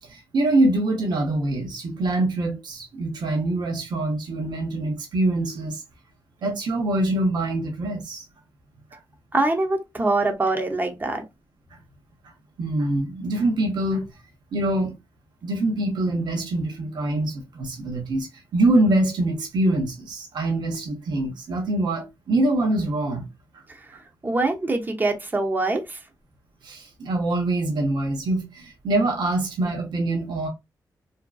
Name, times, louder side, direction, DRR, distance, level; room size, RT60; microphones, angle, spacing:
voice 1, 0.1-5.8 6.4-8.2 12.6-14.1 14.5-14.9 15.4-18.3 18.5-23.3 26.6-30.5, right 2 dB, 70° right, 0.8 m, -24 dB
voice 2, 9.3-11.2 23.7-23.8 24.2-26.0, right 2 dB, 25° right, 0.7 m, -24 dB
2.6 x 2.2 x 2.3 m
cardioid pair, 60°, 8 cm